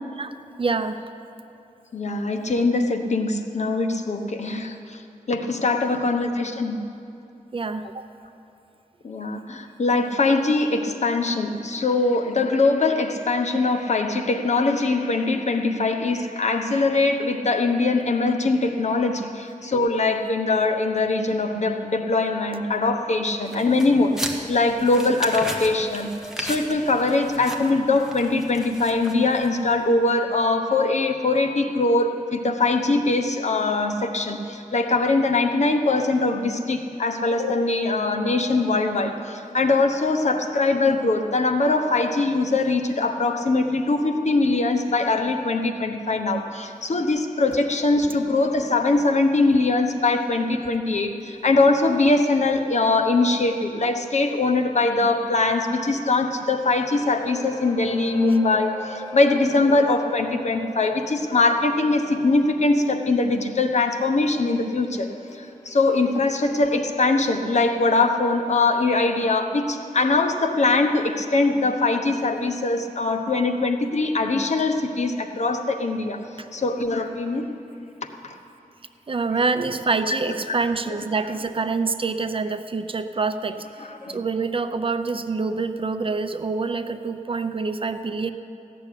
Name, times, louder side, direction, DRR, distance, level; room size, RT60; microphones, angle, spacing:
voice 1, 0.6-1.0 7.5-8.1 76.4-76.5 79.1-83.7 84.1-88.3, right 4 dB, 40° right, 9 dB, 0.6 m, -26 dB
voice 2, 1.9-5.0 5.3-6.8 9.0-26.1 26.4-76.2 76.5-77.5 78.2-78.3 80.1-80.2 80.5-80.6 80.9-81.0 83.8-84.2, left 3 dB, 55° left, 5 dB, 1.0 m, -22 dB
sound 1, 23.5-29.7, right 1 dB, 5° right, 1.3 m, -36 dB
sound 2, 56.9-69.6 70.0-70.2 70.7-70.8, left 1 dB, 20° left, 1.2 m, -42 dB
15.0 x 6.9 x 10.0 m, 2.8 s
wide cardioid pair, 105°, 14 cm